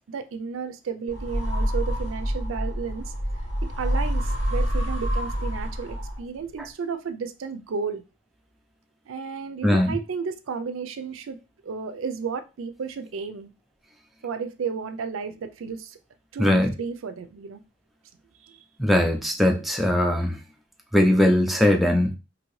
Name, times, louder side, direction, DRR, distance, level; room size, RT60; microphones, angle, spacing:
voice 1, 0.1-3.1 3.6-8.0 9.1-13.5 14.2-16.0 16.3-17.6 18.4-18.6, right 5 dB, 90° right, 0.4 m, -33 dB
sound 1, 1.1-6.4, equal, 80° left, 1.4 m, -27 dB
voice 2, 9.6-10.0 16.4-16.7 18.8-20.4 20.9-22.2, left 1 dB, ahead, 0.3 m, -20 dB
2.7 x 2.7 x 3.1 m
head